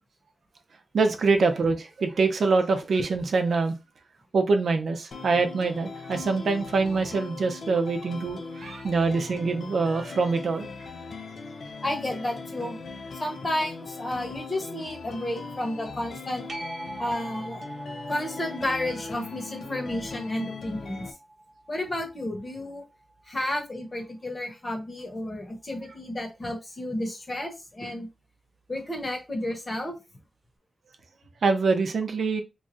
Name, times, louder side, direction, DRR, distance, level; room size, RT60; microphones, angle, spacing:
voice 1, 0.9-3.8 4.3-10.7 31.4-32.4, right 4 dB, 80° right, 0.6 m, -24 dB
sound 1, 5.1-21.1, left 4 dB, 75° left, 0.5 m, -40 dB
voice 2, 11.8-12.8 13.2-16.4 17.0-17.6 18.1-21.1 21.7-22.8 23.3-28.1 28.7-29.9, left 1 dB, 30° left, 1.0 m, -31 dB
sound 2, 16.5-23.7 29.2-29.3, right 1 dB, 40° right, 0.9 m, -43 dB
3.1 x 2.5 x 3.9 m
wide cardioid pair, 170°, 0 cm